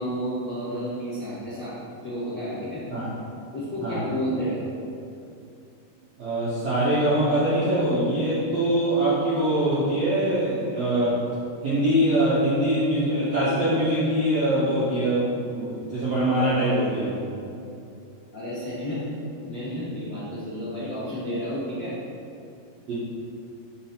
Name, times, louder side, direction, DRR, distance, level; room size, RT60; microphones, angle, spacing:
voice 1, 0.0-2.8 3.5-4.6 18.3-19.0 19.3-21.9, equal, 80° left, -13 dB, 1.0 m, -31 dB
voice 2, 6.2-11.2 11.6-17.2 22.9-23.0, right 1 dB, 75° right, -11 dB, 1.4 m, -23 dB
6.0 x 4.5 x 4.3 m, 2.6 s
omnidirectional pair, 4.7 m